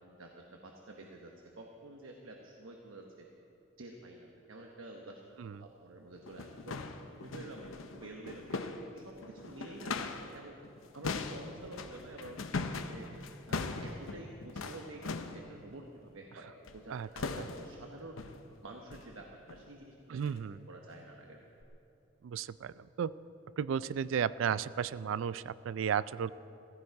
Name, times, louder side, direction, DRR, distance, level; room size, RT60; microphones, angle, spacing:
voice 1, 0.0-3.3 3.8-5.2 5.6-6.8 7.2-10.6 10.9-13.1 13.5-18.2 18.6-20.4 20.7-21.4, right 2 dB, 90° right, 1 dB, 1.1 m, -49 dB
sound 1, 5.5-5.6 6.2-10.4 10.6-15.5 16.6-16.9 17.2-17.8 18.2-18.5 18.9-19.1 19.5-19.7 20.2-20.4 20.9-21.0 21.6-21.7, left 3 dB, 90° left, 0.8 m, -40 dB
voice 2, 20.1-20.6 22.2-23.1 23.6-26.3, right 7 dB, 75° right, 18 dB, 0.3 m, -34 dB
15.5 x 15.0 x 4.7 m, 3.0 s
head